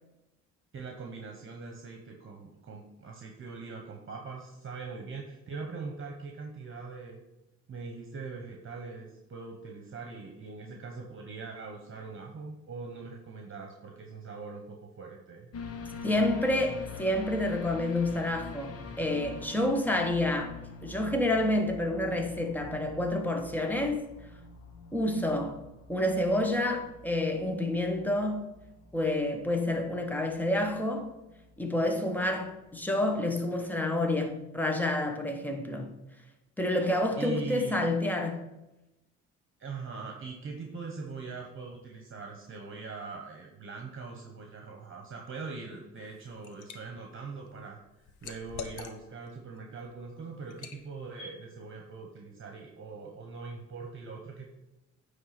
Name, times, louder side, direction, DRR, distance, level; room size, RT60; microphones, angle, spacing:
voice 1, 0.7-7.2 7.7-15.5 37.2-37.9 39.6-54.5, right 4 dB, 45° right, 1.2 m, -42 dB
sound 1, 15.5-33.3 33.7-33.8, left 3 dB, 55° left, 1.1 m, -46 dB
voice 2, 16.0-20.6 20.8-24.1 24.9-25.6 25.9-28.5 28.9-31.1 31.6-35.9 36.6-38.5, left 1 dB, 5° left, 1.1 m, -29 dB
Liquid, 46.0-46.8 47.2-49.3 49.7-49.9 50.5-50.8, left 7 dB, 80° left, 0.9 m, -44 dB
9.2 x 3.4 x 5.9 m
cardioid pair, 90°, 30 cm